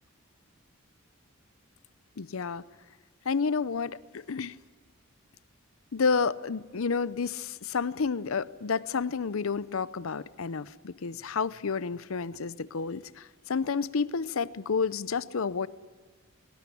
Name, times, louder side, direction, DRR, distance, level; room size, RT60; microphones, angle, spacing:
voice 1, 2.2-2.6 3.3-4.6 5.9-15.7, left 5 dB, 80° left, 0.6 m, -30 dB
19.0 x 18.5 x 10.0 m
head